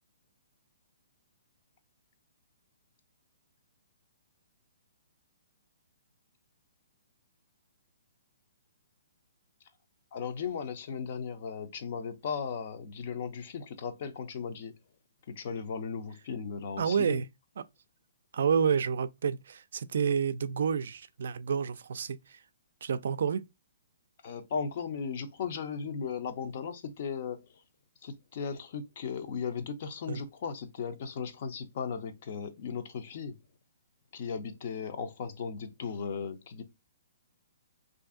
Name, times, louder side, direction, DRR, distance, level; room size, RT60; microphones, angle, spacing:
voice 1, 10.1-14.7 15.3-17.2 24.2-27.4 28.0-33.3 34.1-36.6, left 6 dB, 45° left, 0.6 m, -36 dB
voice 2, 16.8-17.3 17.6-17.7 18.3-22.4 22.8-23.4 30.1-30.2, right 6 dB, 65° right, 0.3 m, -29 dB
2.6 x 2.4 x 3.6 m
hypercardioid pair, 160°, 0 cm